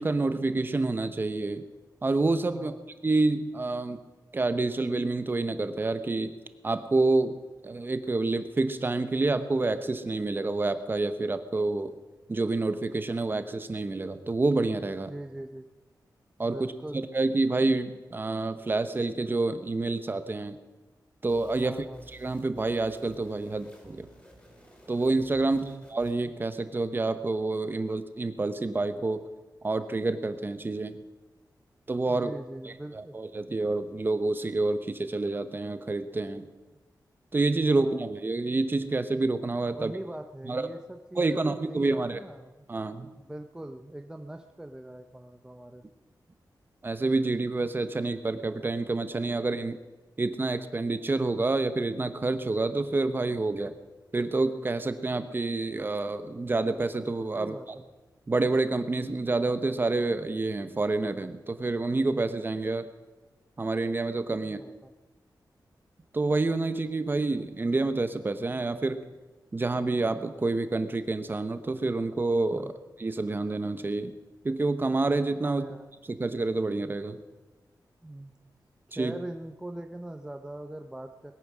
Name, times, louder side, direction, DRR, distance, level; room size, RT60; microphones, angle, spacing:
voice 1, 0.0-1.6 2.0-2.7 3.0-4.0 4.3-6.3 6.6-7.4 7.6-11.9 12.3-15.1 16.4-16.7 16.9-20.6 21.2-21.7 22.2-24.1 24.9-29.2 29.6-31.0 31.9-32.3 32.6-36.5 37.3-39.9 40.4-40.7 41.1-42.2 42.7-43.1 46.8-49.8 50.2-53.7 54.1-57.8 58.3-62.9 63.6-64.6 66.1-69.0 69.5-74.2 74.4-75.6 76.1-77.2 78.9-79.1, right 3 dB, 30° right, 10 dB, 0.9 m, -28 dB
voice 2, 15.1-15.7 16.4-17.0 21.6-22.0 25.4-25.8 32.1-33.2 37.6-38.1 39.7-42.5 43.2-45.8 57.3-57.9 64.4-64.9 72.5-72.7 75.4-75.9 78.0-78.3 78.9-81.3, right 1 dB, 10° right, 6 dB, 0.6 m, -41 dB
sound 1, 21.2-26.3, equal, 15° left, 4.4 m, -55 dB
20.5 x 9.2 x 6.1 m, 1.2 s
wide cardioid pair, 150°, 7 cm